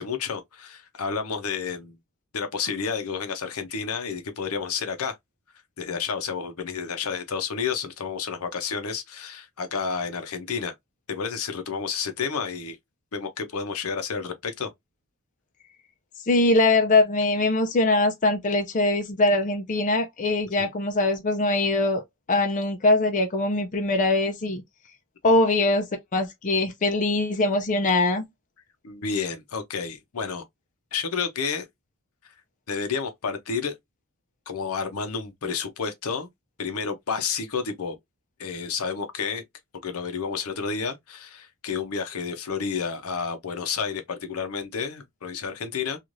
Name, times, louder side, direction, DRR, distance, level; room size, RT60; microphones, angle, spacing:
voice 1, 0.0-2.0 2.3-5.2 5.8-10.7 11.1-12.8 13.1-14.7 20.6-20.7 28.8-30.4 30.9-31.6 32.2-32.3 32.7-33.7 34.5-36.3 36.6-38.0 38.4-39.4 39.8-46.0, left 5 dB, 75° left, 0.7 m, -30 dB
voice 2, 16.3-22.0 22.3-24.6 25.2-25.9 26.1-28.3, left 2 dB, 35° left, 0.5 m, -22 dB
3.1 x 2.4 x 2.5 m
head